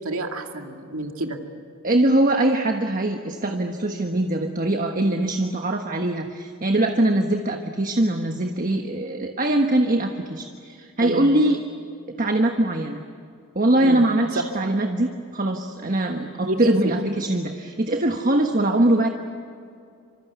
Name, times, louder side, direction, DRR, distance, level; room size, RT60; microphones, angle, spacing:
voice 1, 0.0-1.4 11.0-11.3 13.8-14.0 14.3-14.5 16.5-16.9, right 1 dB, 70° right, 3 dB, 2.4 m, -28 dB
voice 2, 1.8-11.6 12.2-13.1 13.5-19.1, right 1 dB, 40° right, 4 dB, 1.3 m, -22 dB
25.5 x 25.5 x 8.3 m, 2.4 s
head